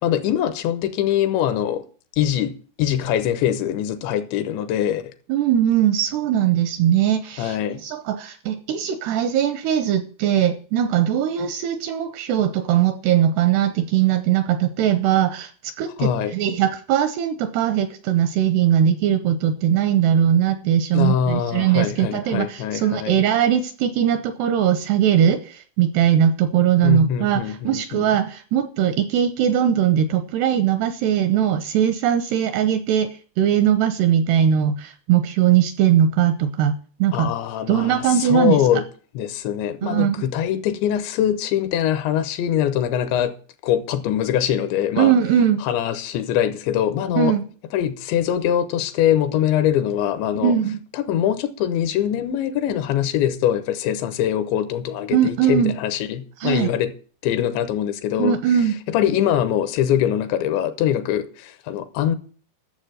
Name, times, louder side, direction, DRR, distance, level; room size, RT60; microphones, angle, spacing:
voice 1, 0.0-1.8 2.2-2.5 2.8-5.0 7.4-7.8 16.0-16.3 20.9-23.2 26.8-28.1 37.1-38.8 39.1-43.3 43.6-45.1 45.6-47.3 47.7-50.5 50.9-56.9 57.2-58.4 58.9-62.2, left 10 dB, 80° left, 3.1 m, -23 dB
voice 2, 5.3-15.5 15.8-33.1 33.4-36.7 37.0-37.3 37.7-38.6 39.8-40.2 45.0-45.6 47.2-47.4 50.4-50.8 55.1-55.7 56.4-56.7 58.2-58.7, right 9 dB, 80° right, 2.5 m, -20 dB
11.5 x 7.2 x 7.9 m
omnidirectional pair, 5.4 m